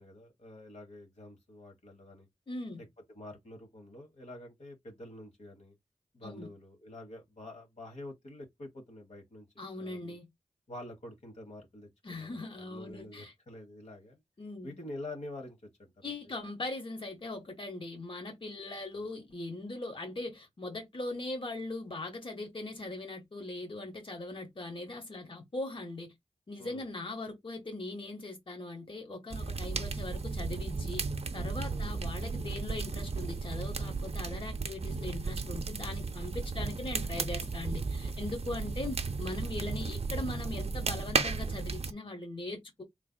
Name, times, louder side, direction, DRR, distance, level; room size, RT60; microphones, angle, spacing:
voice 1, 0.0-2.3 2.8-2.9 3.1-5.7 6.1-9.5 9.8-10.2 10.7-14.2 14.6-16.3 18.9-19.1 26.6-26.8 31.7-32.0 38.5-38.7, left 1 dB, 75° left, 1.4 m, -47 dB
voice 2, 2.5-2.8 6.2-6.5 9.6-10.3 12.0-13.3 14.4-14.7 16.0-26.1 26.5-31.0 31.3-42.8, left 2 dB, 50° left, 1.3 m, -40 dB
sound 1, 29.3-41.9, right 4 dB, 60° right, 0.5 m, -34 dB
3.9 x 3.2 x 2.2 m
cardioid pair, 40°, 12 cm